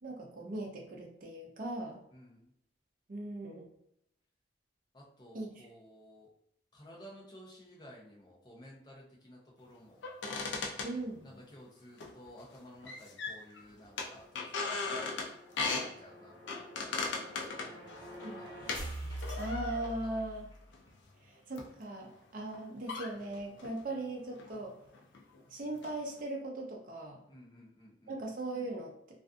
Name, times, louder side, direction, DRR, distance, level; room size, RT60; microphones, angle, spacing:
voice 1, 0.0-2.0 3.1-3.7 5.3-5.5 10.8-11.2 18.2-18.4 19.4-20.5 21.2-24.8 25.5-27.2 28.1-29.2, right 2 dB, 45° right, 0 dB, 0.5 m, -39 dB
voice 2, 2.1-2.5 4.9-6.3 6.7-10.0 11.2-17.1 17.6-18.6 20.0-20.3 27.3-28.2, equal, 20° left, -3 dB, 0.6 m, -55 dB
sound 1, 10.0-11.5 12.0-12.6 12.8-13.6 14.0-15.9 16.5-18.8 19.2-20.0 20.7-20.9 21.6-21.7 22.5-22.6 22.9-23.8 24.4-24.6 24.9-25.4 25.7-26.2, left 4 dB, 65° left, 0.4 m, -38 dB
sound 2, 13.8-20.6, equal, 30° right, 1.0 m, -45 dB
2.4 x 2.4 x 2.4 m, 0.75 s
head